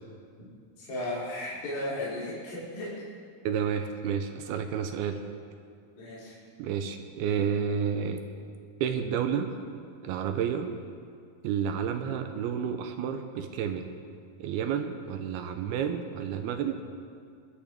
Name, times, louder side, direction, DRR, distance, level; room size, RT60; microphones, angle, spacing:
voice 1, 0.8-3.1 6.0-6.4, left 1 dB, 45° left, -9 dB, 4.1 m, -35 dB
voice 2, 3.4-5.2 6.6-8.2 8.8-9.5 10.0-10.7 11.4-13.9 14.4-16.8, right 7 dB, 85° right, 7 dB, 2.6 m, -30 dB
22.0 x 12.0 x 3.5 m, 2.3 s
omnidirectional pair, 4.6 m